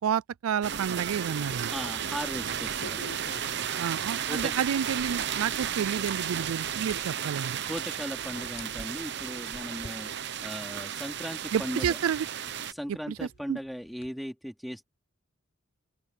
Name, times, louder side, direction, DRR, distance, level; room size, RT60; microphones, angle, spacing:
voice 1, 0.0-1.7 3.4-7.6 11.5-12.3 13.1-13.6, right 8 dB, 85° right, 0.4 m, -30 dB
sound 1, 0.6-12.7, right 8 dB, 55° right, 0.9 m, -33 dB
sound 2, 1.4-14.1, left 3 dB, 55° left, 7.6 m, -52 dB
voice 2, 1.7-3.0 4.3-4.5 7.7-12.0 12.7-14.8, equal, ahead, 3.1 m, -38 dB
open air
head